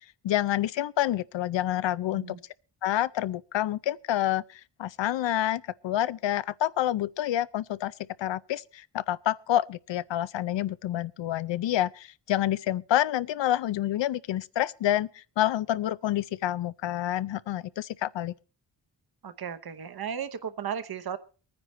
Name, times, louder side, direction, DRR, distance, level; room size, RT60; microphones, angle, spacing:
voice 1, 0.0-2.4 2.8-18.3, left 12 dB, 90° left, 0.6 m, -28 dB
voice 2, 19.2-21.2, right 8 dB, 60° right, 0.9 m, -35 dB
24.5 x 9.7 x 3.1 m
wide cardioid pair, 175°, 42 cm